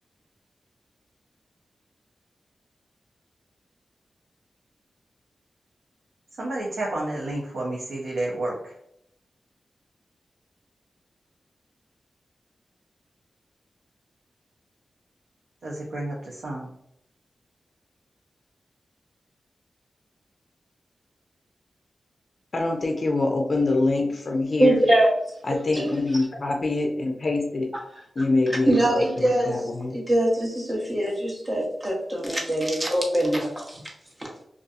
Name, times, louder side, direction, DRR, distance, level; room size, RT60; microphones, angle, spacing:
voice 1, 6.4-8.7 15.6-16.7, right 2 dB, 90° right, -4 dB, 0.5 m, -30 dB
voice 2, 22.5-24.8 25.4-27.7 28.2-30.0, left 2 dB, 50° left, 2 dB, 0.4 m, -25 dB
voice 3, 24.6-25.1 25.8-25.9 28.7-29.6 29.9-33.8 34.2-34.3, right 1 dB, 25° right, -2 dB, 0.8 m, -22 dB
2.6 x 2.3 x 2.3 m, 0.74 s
wide cardioid pair, 75°, 0 cm